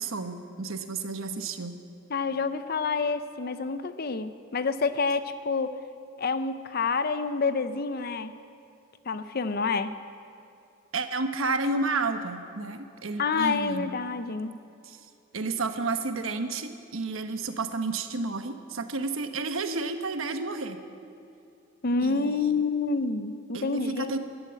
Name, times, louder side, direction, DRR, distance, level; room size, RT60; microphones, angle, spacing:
voice 1, 0.0-1.8 10.9-13.9 14.8-15.0 15.3-20.8 22.0-22.6 23.5-24.2, right 3 dB, 80° right, 8 dB, 1.1 m, -31 dB
voice 2, 2.1-5.8 6.2-8.3 9.1-9.9 13.2-14.6 21.8-24.2, left 4 dB, 50° left, 11 dB, 0.6 m, -28 dB
13.5 x 11.5 x 8.7 m, 2.6 s
head